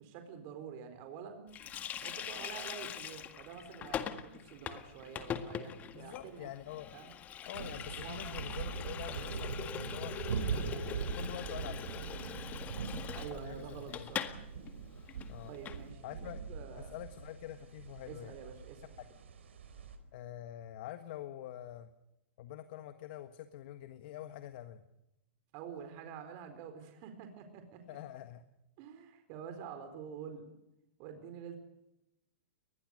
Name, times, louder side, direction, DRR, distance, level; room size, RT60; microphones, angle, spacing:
voice 1, 0.0-1.5 2.0-6.5 6.9-7.1 8.0-8.2 13.1-14.4 15.4-17.0 18.1-18.8 25.5-28.0 28.8-30.5 31.0-31.6, right 7 dB, 45° right, 7 dB, 4.3 m, -47 dB
Water tap faucet, 1.5-14.4 14.7-14.8 15.1-15.8, left 9 dB, 25° left, 1.8 m, -42 dB
voice 2, 5.9-7.0 7.5-10.1 10.7-12.1 13.3-14.1 15.3-15.5 16.0-16.4 16.7-18.4 19.0-19.1 20.1-21.9 22.4-24.8 27.9-28.4, left 12 dB, 55° left, 9 dB, 1.5 m, -46 dB
sound 1, 7.5-20.0, right 5 dB, 85° right, 4.0 m, -42 dB
23.5 x 20.5 x 6.5 m, 0.88 s
hypercardioid pair, 140°, 6 cm